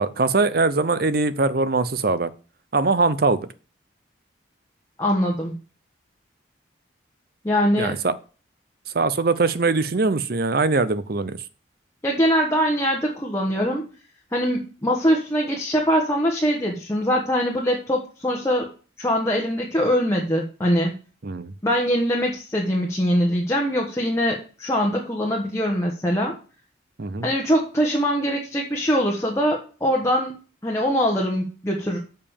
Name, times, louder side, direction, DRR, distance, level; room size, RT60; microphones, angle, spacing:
voice 1, 0.0-2.3 2.7-3.5 7.8-8.1 8.9-11.4 21.2-21.5 27.0-27.3, right 3 dB, 55° right, 14 dB, 0.7 m, -22 dB
voice 2, 5.0-5.5 7.4-7.9 12.0-13.9 14.3-18.7 19.0-20.9 21.6-26.3 27.2-30.3 30.6-32.0, equal, 15° left, -1 dB, 1.3 m, -22 dB
6.8 x 5.4 x 7.0 m, 0.37 s
head